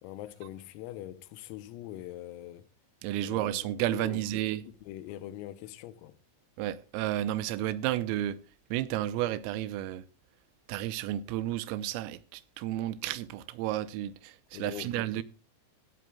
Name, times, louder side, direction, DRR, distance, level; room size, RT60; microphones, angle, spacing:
voice 1, 0.0-2.7 3.2-6.2 14.5-15.2, left 13 dB, 90° left, 3.6 m, -43 dB
voice 2, 3.0-4.6 6.6-8.4 8.7-10.0 10.7-14.3 14.6-15.2, right 13 dB, 85° right, 3.4 m, -32 dB
17.0 x 13.0 x 2.3 m
omnidirectional pair, 6.0 m